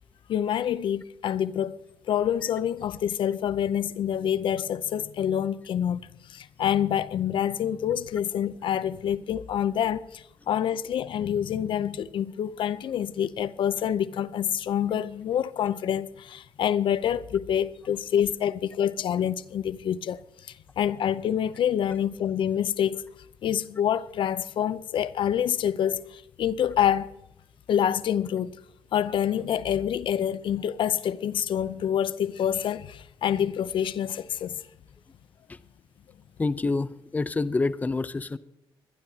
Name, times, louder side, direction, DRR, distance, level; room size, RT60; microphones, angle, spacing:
voice 1, 0.3-1.8 2.1-20.2 20.5-23.1 23.4-27.1 27.7-28.6 28.9-34.6, left 9 dB, 65° left, 0.6 m, -27 dB
voice 2, 36.4-38.4, left 3 dB, 15° left, 0.5 m, -27 dB
24.5 x 11.5 x 2.8 m
cardioid pair, 100°, 9 cm